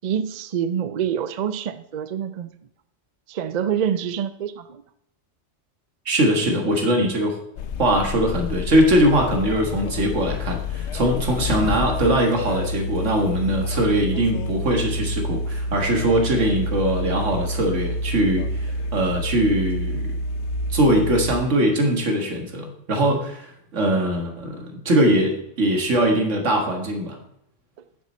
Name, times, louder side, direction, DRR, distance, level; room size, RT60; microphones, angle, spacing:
voice 1, 0.0-2.5 3.3-4.8, right 8 dB, 50° right, 12 dB, 0.6 m, -26 dB
voice 2, 6.1-7.4 7.8-20.1 20.7-27.2, right 1 dB, 85° right, 3 dB, 2.0 m, -21 dB
sound 1, 7.6-21.3, left 2 dB, 70° left, 0.9 m, -28 dB
9.5 x 7.4 x 4.3 m, 0.75 s
omnidirectional pair, 1.2 m